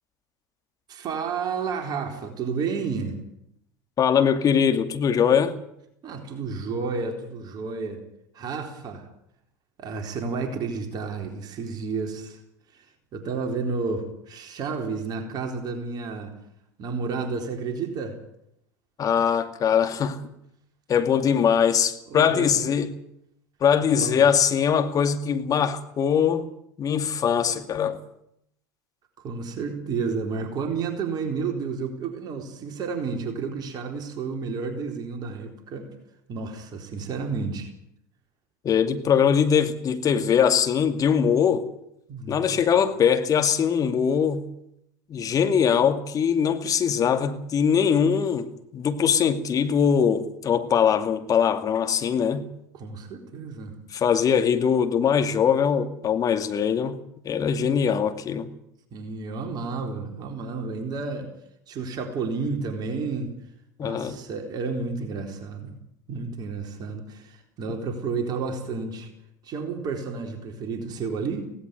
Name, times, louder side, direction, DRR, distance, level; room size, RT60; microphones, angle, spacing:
voice 1, 0.9-3.2 6.0-8.0 8.3-9.1 9.8-12.4 12.7-16.4 16.8-18.2 22.1-22.7 23.8-24.2 29.2-35.9 36.3-37.7 42.1-42.6 52.7-53.8 57.5-57.6 58.9-61.3 61.7-63.3 63.8-65.8 66.1-69.1 69.4-71.5, right 4 dB, 40° right, 4 dB, 4.0 m, -31 dB
voice 2, 4.0-5.5 19.0-20.2 20.9-22.9 23.6-26.4 26.8-28.0 38.6-41.6 42.3-44.5 45.1-52.5 53.9-57.0 57.2-58.5 63.8-64.2, left 7 dB, 35° left, 8 dB, 2.4 m, -22 dB
17.5 x 16.5 x 9.4 m, 0.76 s
hypercardioid pair, 80°, 10 cm